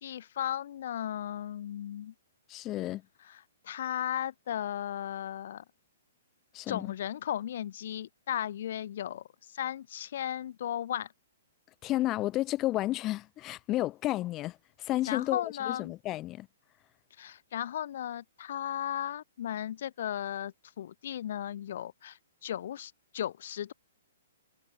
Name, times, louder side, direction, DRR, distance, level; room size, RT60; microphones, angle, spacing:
voice 1, 0.0-2.1 3.3-5.6 6.7-9.2 9.5-11.1 15.1-15.9 17.2-23.7, left 10 dB, 60° left, 5.1 m, -36 dB
voice 2, 2.5-3.0 6.5-6.9 11.8-16.5, left 16 dB, 25° left, 6.3 m, -32 dB
hypercardioid pair, 155°, 0 cm